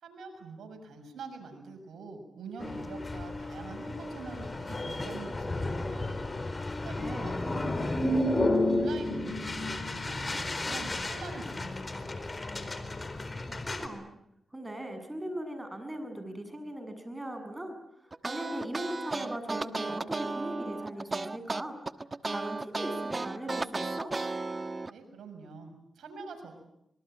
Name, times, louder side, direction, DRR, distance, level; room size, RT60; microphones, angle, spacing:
voice 1, 0.0-6.1 6.8-7.6 7.8-12.3 24.9-26.5, right 3 dB, 80° right, 5 dB, 6.7 m, -44 dB
sound 1, 2.6-13.9, left 1 dB, 35° left, 4.2 m, -32 dB
voice 2, 7.0-7.3 13.7-14.1 14.5-17.8 18.2-21.8 22.2-24.1, right 1 dB, 20° right, 8 dB, 7.6 m, -39 dB
sound 2, 18.1-24.9, right 3 dB, 35° right, 1.3 m, -34 dB
26.0 x 22.5 x 9.0 m, 0.79 s
cardioid pair, 50°, 0 cm